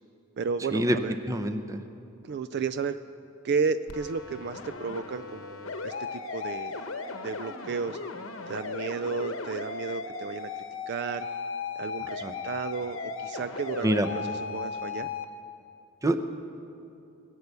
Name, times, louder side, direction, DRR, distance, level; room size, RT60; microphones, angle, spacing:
voice 1, 0.4-1.1 2.2-3.0 3.4-6.8 7.2-8.0 8.5-10.5 10.9-11.3 11.8-15.1, right 5 dB, 55° right, 13 dB, 0.3 m, -33 dB
voice 2, 1.3-1.8 12.2-12.3 13.8-14.1 16.0-16.2, right 1 dB, 15° right, 8 dB, 0.6 m, -25 dB
sound 1, 3.9-15.2, left 4 dB, 70° left, 0.9 m, -36 dB
20.5 x 8.2 x 6.7 m, 2.6 s
head